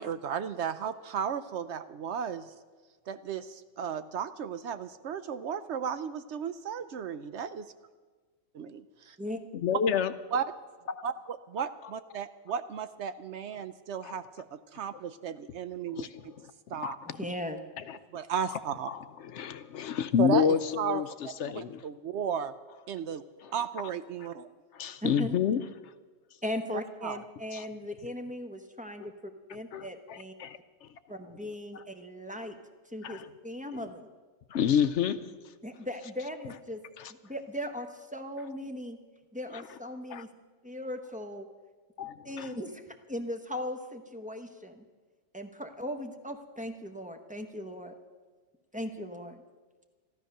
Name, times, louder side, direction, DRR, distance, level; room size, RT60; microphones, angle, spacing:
voice 1, 0.0-2.5 3.1-7.7 9.7-9.8 10.3-10.5 11.0-16.1 16.7-17.0 18.1-18.9 20.2-21.0 21.4-22.5 22.9-23.2 23.5-24.5 27.0-27.2, right 7 dB, 65° right, 12 dB, 0.8 m, -34 dB
voice 2, 9.5-10.1 14.0-14.1 16.0-16.1 16.8-16.9 17.9-18.0 18.9-21.1 21.4-21.8 24.7-25.6 27.5-27.6 29.7-30.6 33.0-33.2 34.5-35.2 37.0-37.1 40.1-40.2 42.0-42.5, left 8 dB, 65° left, 12 dB, 0.8 m, -28 dB
voice 3, 17.1-17.6 25.0-25.4 26.4-30.3 31.1-32.5 32.9-34.1 35.6-36.8 37.1-39.0 39.3-40.3 40.6-41.5 42.2-44.8 45.3-47.9 48.7-49.4, left 1 dB, 5° right, 5 dB, 0.9 m, -38 dB
14.0 x 13.0 x 6.6 m, 1.4 s
omnidirectional pair, 1.3 m